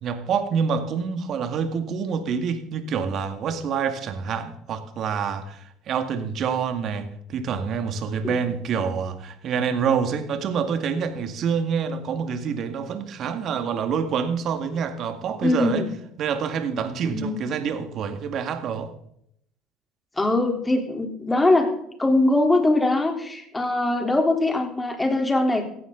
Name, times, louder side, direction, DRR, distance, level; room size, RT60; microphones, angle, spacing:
voice 1, 0.0-15.9 16.2-18.9, right 6 dB, 55° right, 2.0 m, -27 dB
voice 2, 15.4-15.9 17.1-17.4 20.2-25.6, left 2 dB, 15° left, 3.7 m, -22 dB
17.0 x 15.0 x 4.0 m
hypercardioid pair, 70°, 0 cm